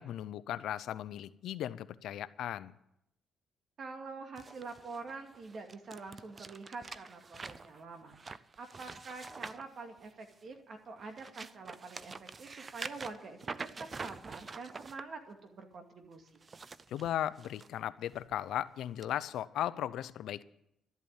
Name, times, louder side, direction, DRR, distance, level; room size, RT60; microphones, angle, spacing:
voice 1, 0.0-2.7 16.9-20.4, left 11 dB, 80° left, 16 dB, 0.6 m, -37 dB
voice 2, 3.8-8.2 8.6-16.5, right 4 dB, 55° right, 5 dB, 2.2 m, -46 dB
sound 1, 4.4-10.5 11.0-15.0 16.3-17.7 18.1-18.4 19.0-19.1, right 4 dB, 35° right, 0.6 m, -46 dB
13.0 x 8.3 x 8.9 m, 0.82 s
cardioid pair, 90°, 0 cm